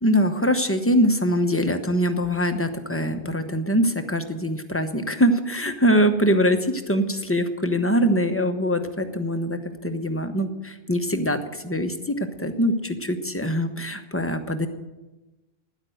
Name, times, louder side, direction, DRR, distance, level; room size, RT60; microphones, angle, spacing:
voice 1, 0.0-14.7, equal, 15° left, 7 dB, 1.0 m, -23 dB
13.0 x 10.5 x 7.9 m, 1.1 s
omnidirectional pair, 1.1 m